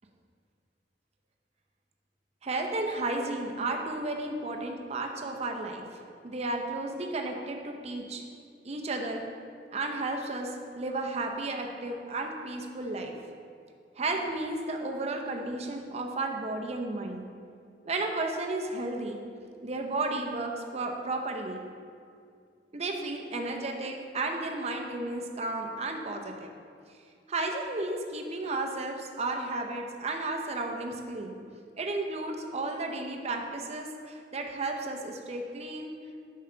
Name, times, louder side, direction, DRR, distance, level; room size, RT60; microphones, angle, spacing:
voice 1, 2.4-5.8 6.2-8.2 8.6-9.2 9.7-13.1 14.0-17.2 17.9-19.2 19.6-21.6 22.7-26.5 27.3-31.4 31.8-35.9, right 2 dB, 40° right, 2 dB, 0.6 m, -33 dB
6.9 x 5.6 x 3.8 m, 2.3 s
head